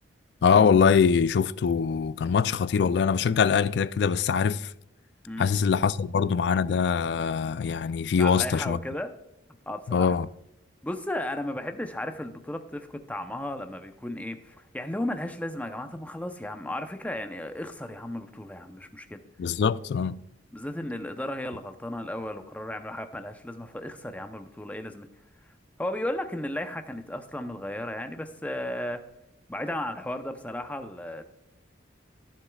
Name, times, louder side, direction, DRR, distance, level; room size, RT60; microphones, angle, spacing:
voice 1, 0.4-4.7 5.4-8.8 9.9-10.3 19.4-20.2, left 6 dB, 60° left, 0.3 m, -23 dB
voice 2, 5.2-5.6 8.2-9.1 9.7-10.2 10.8-19.2 20.5-25.1 25.4-25.5 25.8-29.0 29.5-31.2, left 1 dB, 10° left, 0.6 m, -34 dB
14.5 x 7.2 x 2.3 m
head